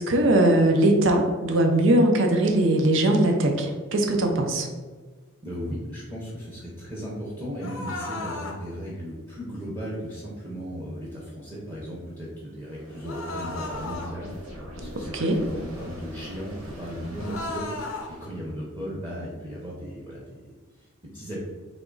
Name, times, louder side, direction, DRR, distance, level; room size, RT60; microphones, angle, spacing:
voice 1, 0.0-4.7 14.8-15.4, right 1 dB, 60° right, 3 dB, 0.5 m, -21 dB
voice 2, 5.4-20.4 21.1-21.4, equal, 20° right, -6 dB, 0.7 m, -36 dB
sound 1, 7.6-8.6 13.0-14.1 17.2-18.1, left 2 dB, 70° left, 0.7 m, -34 dB
sound 2, 12.7-18.5, equal, 90° right, 1.2 m, -42 dB
3.6 x 2.9 x 3.8 m, 1.4 s
head